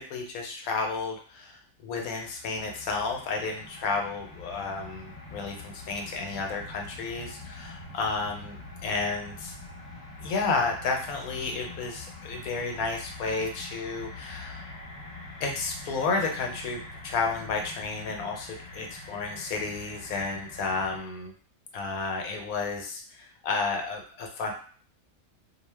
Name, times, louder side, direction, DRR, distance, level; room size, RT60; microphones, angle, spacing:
voice 1, 0.0-8.6 8.8-9.5 10.2-14.7 15.4-21.3 21.7-24.5, left 4 dB, 75° left, 2 dB, 1.0 m, -32 dB
sound 1, 2.2-21.0, left 2 dB, 35° left, 0.8 m, -44 dB
2.6 x 2.0 x 3.2 m, 0.43 s
omnidirectional pair, 1.5 m